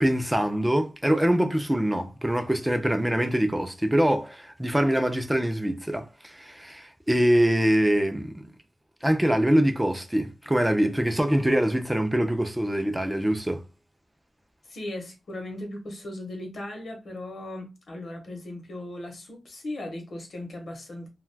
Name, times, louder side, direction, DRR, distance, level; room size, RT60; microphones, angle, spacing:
voice 1, 0.0-8.5 9.0-13.6, right 1 dB, 5° right, 0.4 m, -24 dB
voice 2, 14.7-21.1, left 1 dB, 60° left, 0.9 m, -37 dB
2.3 x 2.2 x 3.3 m
wide cardioid pair, 140°, 0 cm